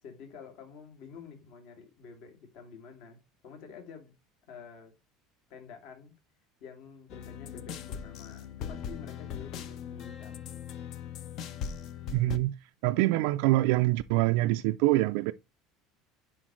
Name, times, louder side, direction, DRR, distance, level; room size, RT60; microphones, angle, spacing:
voice 1, 0.0-3.2 3.4-4.1 4.5-4.9 5.5-6.1 6.6-10.5, left 6 dB, 55° left, 2.6 m, -49 dB
sound 1, 7.1-12.4, left 8 dB, 40° left, 0.6 m, -40 dB
voice 2, 12.1-12.5 12.8-15.3, right 18 dB, 65° right, 0.3 m, -25 dB
10.0 x 4.1 x 3.1 m
cardioid pair, 180°, 0 cm